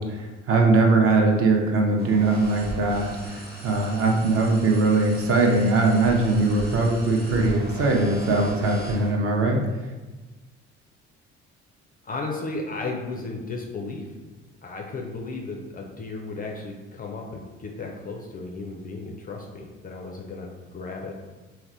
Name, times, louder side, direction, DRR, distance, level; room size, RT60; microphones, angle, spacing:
voice 1, 0.0-9.6, right 3 dB, 40° right, 1 dB, 0.6 m, -21 dB
sound 1, 2.0-9.1, right 2 dB, 80° right, 1.0 m, -38 dB
voice 2, 12.0-14.1 14.6-21.1, left 3 dB, 25° left, 1 dB, 0.4 m, -34 dB
4.0 x 2.1 x 2.5 m, 1.2 s
figure-of-eight pair, 45°, 36 cm